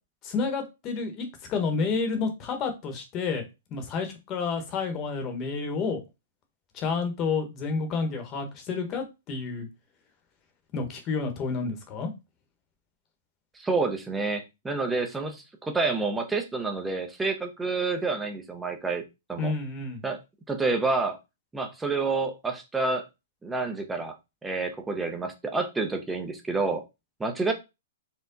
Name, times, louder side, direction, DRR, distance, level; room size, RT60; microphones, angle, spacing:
voice 1, 0.2-3.4 3.7-6.0 6.7-9.7 10.7-12.1 19.4-20.0, left 4 dB, 25° left, 6 dB, 1.1 m, -30 dB
voice 2, 13.6-19.0 19.3-19.5 20.0-20.2 20.5-21.2 21.5-23.1 23.4-24.1 24.4-26.8 27.2-27.5, right 3 dB, 5° right, 4 dB, 0.7 m, -28 dB
4.4 x 2.3 x 3.9 m, 0.25 s
hypercardioid pair, 150°, 0 cm